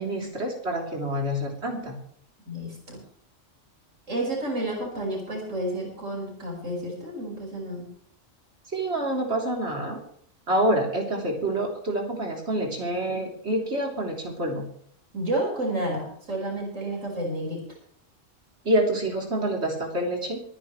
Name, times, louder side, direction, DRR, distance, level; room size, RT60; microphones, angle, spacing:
voice 1, 0.0-2.0 8.7-10.0 10.5-14.7 18.7-20.4, right 1 dB, 60° right, 0 dB, 3.8 m, -27 dB
voice 2, 2.5-3.0 4.1-7.9 15.1-17.6, right 1 dB, 85° right, -2 dB, 5.8 m, -30 dB
25.0 x 10.5 x 3.3 m, 0.62 s
omnidirectional pair, 1.3 m